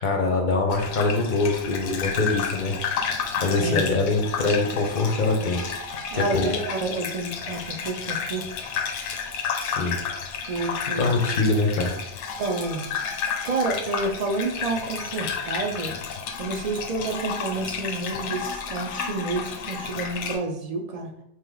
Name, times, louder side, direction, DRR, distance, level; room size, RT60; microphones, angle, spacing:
voice 1, 0.0-2.8 3.4-5.6 6.1-6.5 9.5-10.0 10.9-11.9, left 3 dB, 50° left, 3 dB, 0.7 m, -23 dB
Gurgling / Bathtub (filling or washing), 0.7-20.4, left 6 dB, 85° left, 0.9 m, -31 dB
voice 2, 3.5-3.9 6.1-8.5 10.5-11.1 12.4-12.9 13.4-15.9 16.4-21.1, right 3 dB, 45° right, 3 dB, 0.5 m, -29 dB
3.5 x 2.8 x 3.8 m, 0.78 s
omnidirectional pair, 1.2 m